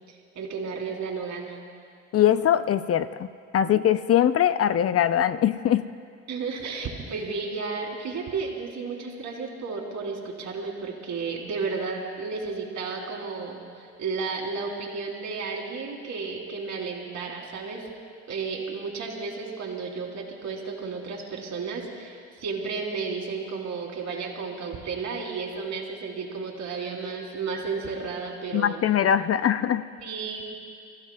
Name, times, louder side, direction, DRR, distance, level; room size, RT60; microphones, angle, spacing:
voice 1, 0.1-1.6 6.3-17.9 18.3-28.8 30.0-30.4, right 4 dB, 65° right, 0 dB, 3.0 m, -33 dB
voice 2, 2.1-3.3 3.5-5.9 28.5-29.9, left 10 dB, 50° left, 13 dB, 0.5 m, -22 dB
29.5 x 15.0 x 2.3 m, 2.3 s
cardioid pair, 90°, 30 cm